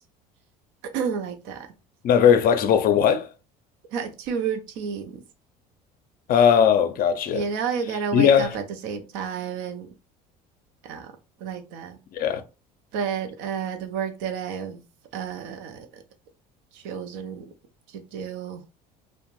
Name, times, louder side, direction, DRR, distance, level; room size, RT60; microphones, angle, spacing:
voice 1, 0.9-1.7 3.9-5.2 7.3-9.9 10.8-12.0 12.9-14.8 15.1-16.0 16.7-17.4 17.9-18.6, right 6 dB, 70° right, 0.6 m, -31 dB
voice 2, 2.0-3.3 6.3-7.4 8.1-8.6 12.1-12.4, left 8 dB, 45° left, 0.5 m, -18 dB
2.5 x 2.1 x 3.0 m
hypercardioid pair, 75°, 20 cm